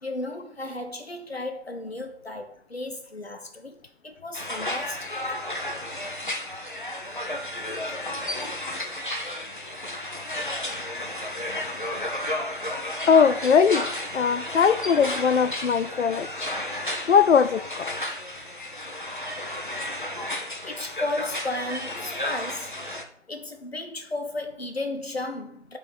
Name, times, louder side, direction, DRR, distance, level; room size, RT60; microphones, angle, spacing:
voice 1, 0.0-3.8 4.0-5.1 20.6-22.7 23.3-25.8, left 2 dB, 60° left, 1.1 m, -34 dB
sound 1, 4.3-23.0, left 1 dB, 45° left, 0.7 m, -33 dB
voice 2, 13.1-13.9 14.1-17.9, left 6 dB, 80° left, 0.5 m, -21 dB
6.1 x 3.7 x 5.9 m
figure-of-eight pair, 175°, 34 cm